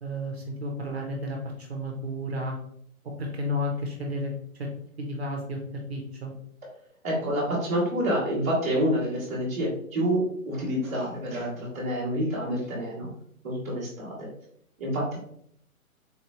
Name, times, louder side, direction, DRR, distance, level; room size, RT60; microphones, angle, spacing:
voice 1, 0.0-2.6 3.2-4.3 4.6-4.7 5.0-5.6 5.9-6.3, left 1 dB, 45° right, 1 dB, 0.7 m, -32 dB
voice 2, 7.0-13.1 13.4-14.3 14.8-15.2, equal, 10° right, -11 dB, 0.8 m, -28 dB
3.8 x 2.9 x 2.9 m, 0.69 s
hypercardioid pair, 180°, 43 cm